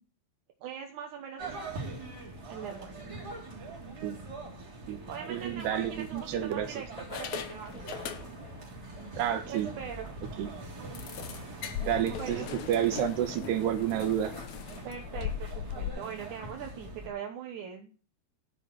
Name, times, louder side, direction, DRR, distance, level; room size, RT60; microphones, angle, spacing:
voice 1, 0.6-1.7 2.4-2.9 5.1-7.9 8.2-8.5 9.5-10.1 12.2-12.5 14.8-18.0, right 7 dB, 65° right, 3 dB, 2.0 m, -42 dB
sound 1, 1.4-17.1, right 2 dB, 25° right, 3.6 m, -43 dB
sound 2, 4.9-5.1 5.8-6.5 7.0-8.6 8.9-9.1 9.5-9.6 9.9-10.0 10.9-15.9, left 9 dB, 70° left, 1.7 m, -40 dB
voice 2, 5.3-6.7 9.2-9.7 10.4-10.5 11.8-14.3, right 10 dB, 85° right, 6 dB, 3.2 m, -30 dB
11.0 x 6.7 x 5.9 m, 0.37 s
omnidirectional pair, 4.7 m